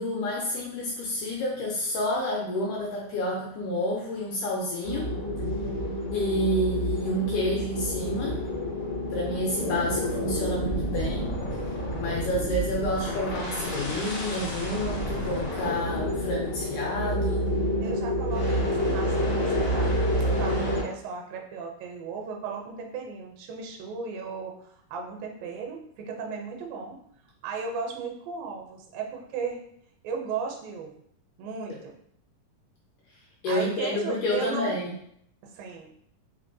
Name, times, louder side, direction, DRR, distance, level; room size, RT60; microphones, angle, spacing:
voice 1, 0.0-5.1 6.1-8.4 9.1-11.4 11.9-17.5 31.7-31.8 33.4-34.9, left 1 dB, 80° left, -3 dB, 1.9 m, -29 dB
sound 1, 4.8-20.8, equal, 65° left, 1.0 m, -29 dB
voice 2, 17.8-27.0 27.4-29.6 30.0-30.9 31.4-31.9 33.5-34.8 35.4-35.9, right 5 dB, 80° right, 2 dB, 2.2 m, -36 dB
5.2 x 3.2 x 2.6 m, 0.70 s
omnidirectional pair, 4.2 m